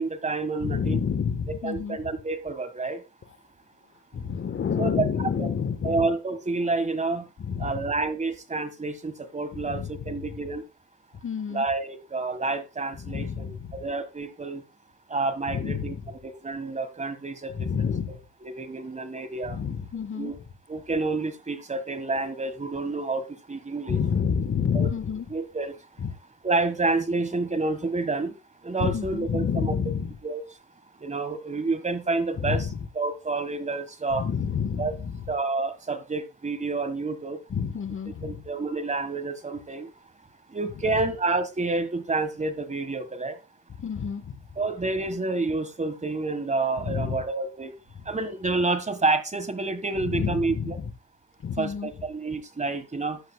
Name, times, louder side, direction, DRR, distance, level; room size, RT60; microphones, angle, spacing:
voice 1, 0.0-1.0 1.6-3.0 4.8-5.0 5.4-5.5 5.8-7.3 7.6-10.6 11.5-14.6 15.1-15.9 16.2-17.9 18.4-19.6 20.1-20.4 20.7-24.0 24.7-24.9 25.3-25.8 26.4-28.3 28.6-29.7 30.2-30.4 31.0-32.7 32.9-34.3 34.8-34.9 35.3-37.4 38.2-39.9 40.5-43.4 44.6-47.7 48.0-50.8 51.6-53.2, right 3 dB, 25° right, 1.6 m, -29 dB
voice 2, 0.6-2.0 4.1-6.1 7.4-7.8 9.5-10.2 11.2-11.7 13.0-13.8 15.5-16.1 17.5-18.2 19.5-20.4 23.9-25.3 26.0-26.1 28.8-30.2 32.4-32.8 34.1-35.2 37.5-38.4 43.8-44.4 46.8-47.2 50.0-50.9 51.4-51.9, left 7 dB, 40° left, 1.4 m, -29 dB
13.0 x 10.5 x 2.3 m
cardioid pair, 90°, 30 cm